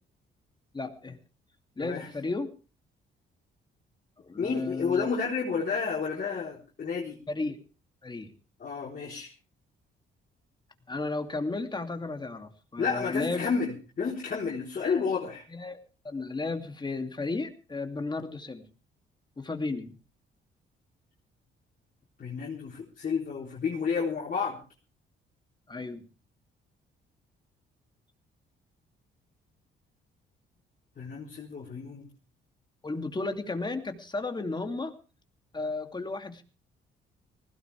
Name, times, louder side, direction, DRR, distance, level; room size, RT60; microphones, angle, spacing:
voice 1, 0.7-1.2 1.8-2.5 4.2-5.1 7.3-7.6 8.0-8.3 10.9-13.5 14.8-15.1 15.5-15.8 16.0-18.6 19.4-20.0 25.7-26.0 32.8-34.9 35.5-36.4, left 3 dB, 20° left, 6 dB, 2.7 m, -34 dB
voice 2, 4.4-7.2 8.6-9.3 12.8-15.4 22.2-24.6 31.0-32.1, left 5 dB, 45° left, -2 dB, 4.0 m, -31 dB
19.5 x 17.0 x 3.4 m, 0.35 s
cardioid pair, 90°, 20 cm